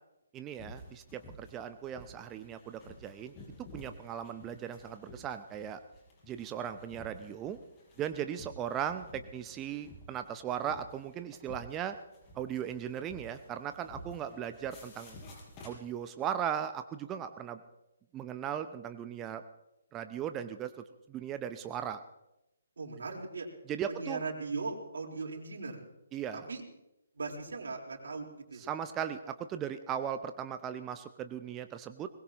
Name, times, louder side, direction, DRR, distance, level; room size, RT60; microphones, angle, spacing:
voice 1, 0.3-3.3 3.6-5.8 6.3-7.6 8.0-12.0 12.3-15.2 15.6-17.6 18.1-19.4 19.9-20.7 21.1-22.0 23.7-24.2 26.1-26.4 28.6-32.1, right 9 dB, 20° right, 9 dB, 0.7 m, -37 dB
sound 1, 0.6-16.1, left 1 dB, 25° left, 5.2 m, -52 dB
voice 2, 22.8-23.5 23.9-25.8 26.3-26.6 27.1-28.6, right 4 dB, 65° right, 0 dB, 4.2 m, -38 dB
22.5 x 21.0 x 3.1 m, 0.90 s
figure-of-eight pair, 140°, 0 cm